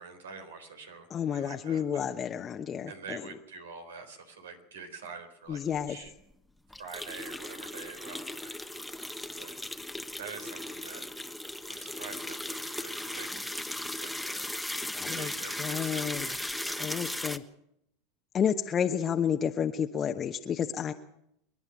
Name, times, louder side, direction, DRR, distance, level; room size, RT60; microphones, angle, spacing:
voice 1, 0.0-2.1 2.9-6.1 6.8-9.6 10.2-11.1 11.7-14.5 15.1-17.2, right 5 dB, 80° right, 8 dB, 3.8 m, -46 dB
voice 2, 1.1-3.2 5.5-6.0 14.9-15.3 15.6-16.3 16.8-17.4 18.3-20.9, left 8 dB, 35° left, 5 dB, 1.0 m, -30 dB
sound 1, 5.8-5.9 6.1-6.2 6.7-17.4, left 1 dB, ahead, 1.2 m, -37 dB
27.5 x 11.0 x 9.1 m, 0.78 s
hypercardioid pair, 85°, 0 cm